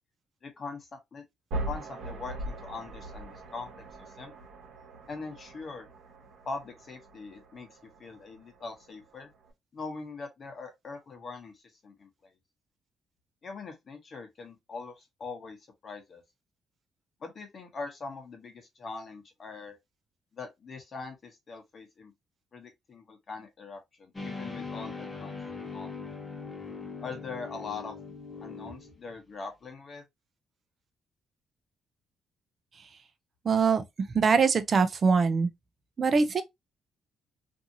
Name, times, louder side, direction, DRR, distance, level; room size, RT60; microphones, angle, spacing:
voice 1, 0.4-1.2 1.7-3.7 4.2-4.3 5.1-5.9 6.4-7.7 8.0-9.3 9.7-12.1 13.4-15.6 15.8-16.2 17.2-19.8 20.3-22.1 22.5-25.4 25.7-25.9 27.0-28.0 28.4-30.0, left 4 dB, 45° left, 0.9 m, -42 dB
sound 1, 1.5-9.5, right 1 dB, 75° right, 1.2 m, -41 dB
sound 2, 24.1-29.1, left 4 dB, 20° left, 0.9 m, -40 dB
voice 2, 33.4-33.8 34.1-35.5 36.0-36.4, right 5 dB, 45° right, 0.5 m, -23 dB
2.6 x 2.6 x 2.6 m
cardioid pair, 90°, 0 cm